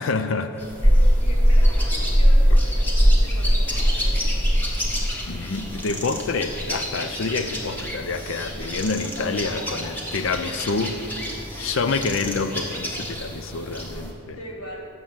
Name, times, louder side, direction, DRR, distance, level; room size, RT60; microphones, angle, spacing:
voice 1, 0.0-0.6 5.3-11.0 11.6-14.4, left 4 dB, 65° left, 10 dB, 0.5 m, -27 dB
sound 1, 0.6-14.1, equal, 10° left, 1.0 m, -22 dB
voice 2, 0.8-4.4 6.9-7.1 9.0-10.1 10.4-10.8 11.5-11.9 14.3-14.9, left 1 dB, 80° left, 0 dB, 1.5 m, -40 dB
8.0 x 6.3 x 7.2 m, 2.8 s
head